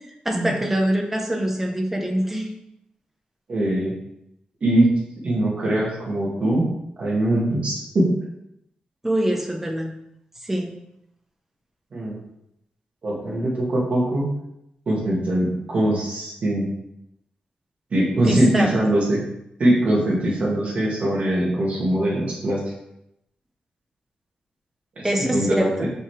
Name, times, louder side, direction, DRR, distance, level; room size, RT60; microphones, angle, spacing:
voice 1, 0.2-2.5 9.0-9.9 10.4-10.7 18.2-18.7 25.0-25.9, right 1 dB, 10° right, 2 dB, 0.8 m, -24 dB
voice 2, 3.5-3.9 4.6-4.9 5.2-6.7 7.0-8.1 11.9-12.2 13.0-14.3 14.9-16.7 17.9-19.2 19.6-22.6 25.0-25.9, right 1 dB, 50° right, -4 dB, 2.2 m, -22 dB
5.6 x 5.5 x 3.3 m, 0.80 s
wide cardioid pair, 150°, 3 cm